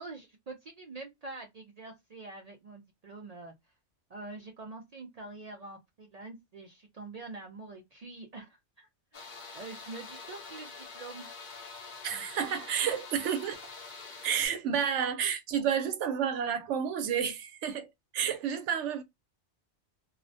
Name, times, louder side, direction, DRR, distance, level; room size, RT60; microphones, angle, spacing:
voice 1, 0.0-3.5 4.1-9.2 9.5-11.4, right 3 dB, 65° right, 0.4 m, -45 dB
sound 1, 9.1-14.5, left 4 dB, 50° left, 0.7 m, -46 dB
voice 2, 12.0-13.6 14.2-17.9 18.1-19.0, right 8 dB, 80° right, 0.9 m, -30 dB
2.4 x 2.0 x 2.6 m
omnidirectional pair, 1.2 m